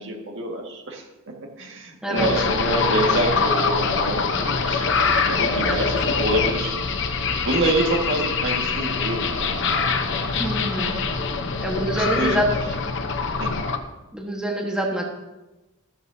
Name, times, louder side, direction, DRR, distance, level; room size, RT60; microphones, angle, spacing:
voice 1, 0.0-4.9 5.2-6.8 7.1-10.2 12.0-12.4 13.4-13.7, right 1 dB, 60° right, 1 dB, 2.0 m, -27 dB
sound 1, 2.1-13.8, left 4 dB, 55° left, 1.0 m, -24 dB
voice 2, 10.4-11.0 11.6-12.5 14.1-15.0, right 1 dB, 5° right, -1 dB, 1.5 m, -26 dB
14.0 x 13.5 x 2.8 m, 1.1 s
head